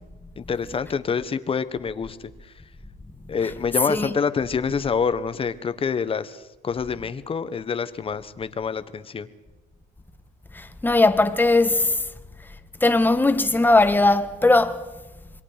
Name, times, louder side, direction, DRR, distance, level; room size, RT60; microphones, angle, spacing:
voice 1, 0.4-2.5 3.3-9.3, left 6 dB, 35° left, 1.4 m, -27 dB
voice 2, 10.5-12.0 12.8-14.8, left 2 dB, 10° left, 1.6 m, -19 dB
27.0 x 22.0 x 5.2 m
cardioid pair, 110°, 17 cm